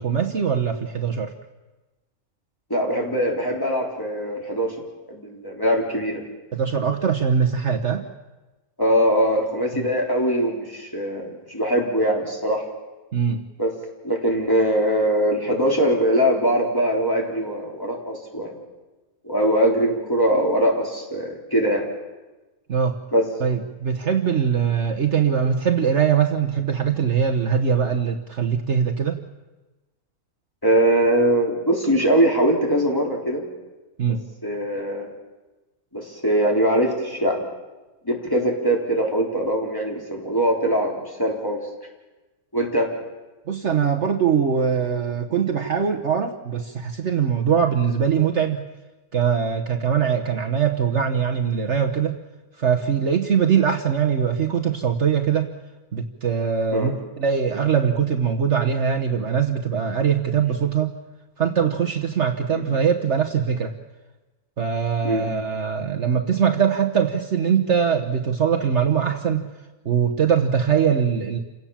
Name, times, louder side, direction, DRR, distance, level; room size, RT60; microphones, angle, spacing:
voice 1, 0.0-1.3 6.5-8.1 13.1-13.4 22.7-23.0 23.4-29.2 34.0-34.2 43.5-48.7 49.1-52.2 52.6-55.5 55.9-60.9 61.4-63.8 64.6-69.5 69.8-71.4, right 7 dB, 55° right, 4 dB, 1.3 m, -22 dB
voice 2, 2.7-4.7 5.1-6.2 8.8-12.6 13.6-13.7 14.0-18.6 19.2-21.8 23.1-23.2 30.6-33.4 34.4-35.1 35.9-37.4 38.0-41.6 42.5-42.9 56.7-56.9 62.5-62.6 65.0-65.3, right 1 dB, 15° left, -1 dB, 3.9 m, -22 dB
28.5 x 17.5 x 7.3 m, 1.2 s
omnidirectional pair, 1.6 m